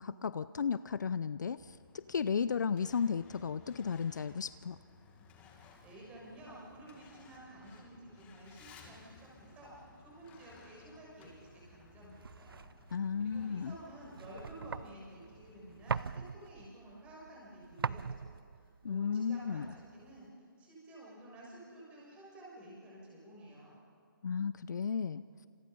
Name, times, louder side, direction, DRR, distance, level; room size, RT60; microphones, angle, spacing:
voice 1, 0.0-4.8 12.9-13.8 18.8-19.7 24.2-25.2, left 6 dB, 55° left, 15 dB, 0.6 m, -34 dB
Truck, 1.6-16.1, left 4 dB, 10° left, 2.0 m, -59 dB
voice 2, 5.8-12.6 13.2-20.3 20.6-23.8, right 1 dB, 10° right, -4 dB, 6.8 m, -52 dB
sound 1, 11.3-20.3, right 5 dB, 75° right, 0.6 m, -43 dB
29.5 x 28.0 x 5.4 m, 2.2 s
hypercardioid pair, 160°, 12 cm